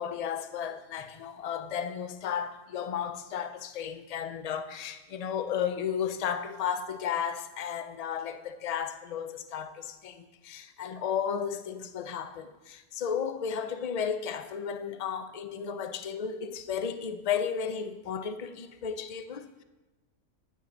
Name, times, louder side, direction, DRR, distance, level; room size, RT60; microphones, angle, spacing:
voice 1, 0.0-19.6, left 7 dB, 50° left, 0.5 m, -34 dB
9.5 x 9.3 x 3.8 m
omnidirectional pair, 1.3 m